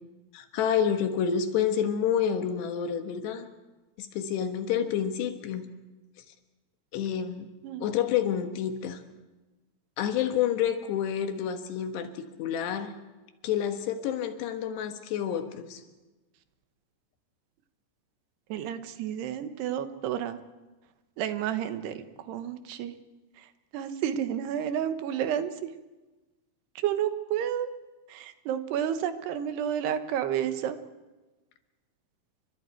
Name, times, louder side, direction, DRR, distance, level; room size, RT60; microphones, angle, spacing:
voice 1, 0.3-3.5 4.0-5.7 6.9-7.5 7.8-9.0 10.0-12.9 13.4-15.8, left 8 dB, 85° left, 7 dB, 3.6 m, -29 dB
voice 2, 18.5-20.4 21.2-22.9 23.4-23.5 23.7-25.7 26.8-27.7 28.1-30.8, right 9 dB, 80° right, 10 dB, 3.2 m, -31 dB
30.0 x 24.0 x 4.5 m, 1.2 s
omnidirectional pair, 4.8 m